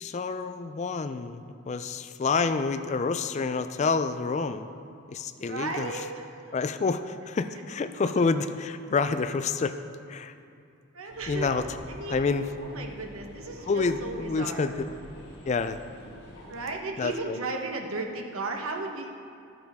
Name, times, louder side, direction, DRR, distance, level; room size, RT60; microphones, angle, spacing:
voice 1, 0.0-4.7 5.1-6.0 6.5-9.8 10.1-10.3 11.3-11.6 12.1-12.5 13.7-14.9 15.5-15.8 17.0-17.4, left 4 dB, 35° left, 11 dB, 0.3 m, -28 dB
voice 2, 5.4-6.5 10.9-11.6 11.9-12.2 12.6-14.8 16.5-19.1, right 3 dB, 90° right, 3 dB, 1.1 m, -35 dB
sound 1, 11.1-16.7, equal, 50° left, 2.0 m, -46 dB
13.0 x 8.8 x 3.6 m, 2.5 s
head